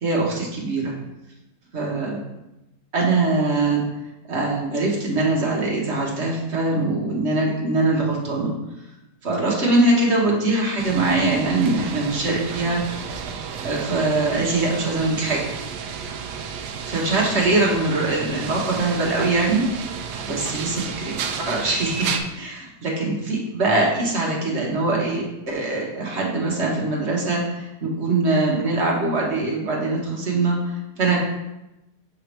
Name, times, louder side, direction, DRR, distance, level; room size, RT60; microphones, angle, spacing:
voice 1, 0.0-0.9 1.7-2.2 2.9-3.8 4.3-8.5 9.2-13.1 13.6-15.5 16.9-19.9 20.2-31.2, right 2 dB, 45° right, -2 dB, 1.2 m, -22 dB
sound 1, 10.8-22.2, right 6 dB, 70° right, 1.1 m, -32 dB
6.5 x 5.0 x 3.3 m, 0.93 s
omnidirectional pair, 2.0 m